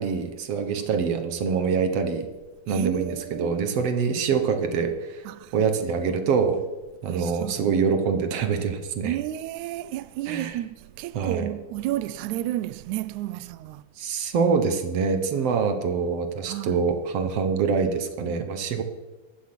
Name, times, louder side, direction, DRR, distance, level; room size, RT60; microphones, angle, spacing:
voice 1, 0.0-2.3 2.7-5.3 5.5-6.6 7.0-9.2 10.3-10.6 11.1-11.5 14.0-18.8, right 5 dB, 60° right, 1.8 m, -25 dB
voice 2, 2.7-3.6 5.2-5.5 7.0-7.6 9.0-13.8 16.5-16.8, right 14 dB, 80° right, 1.7 m, -32 dB
15.5 x 12.0 x 5.9 m
omnidirectional pair, 4.1 m